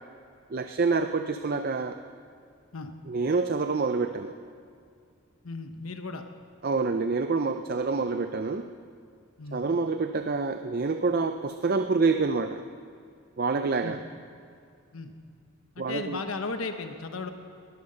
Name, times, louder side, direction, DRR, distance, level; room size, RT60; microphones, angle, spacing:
voice 1, 0.5-2.0 3.1-4.3 6.6-8.7 9.5-12.7 13.4-14.0 15.8-16.2, right 4 dB, 45° right, 8 dB, 0.5 m, -27 dB
voice 2, 5.4-6.2 9.4-9.6 13.8-14.0 14.9-15.1 15.7-17.3, left 3 dB, 90° left, 6 dB, 1.0 m, -35 dB
21.5 x 9.5 x 6.6 m, 2.3 s
head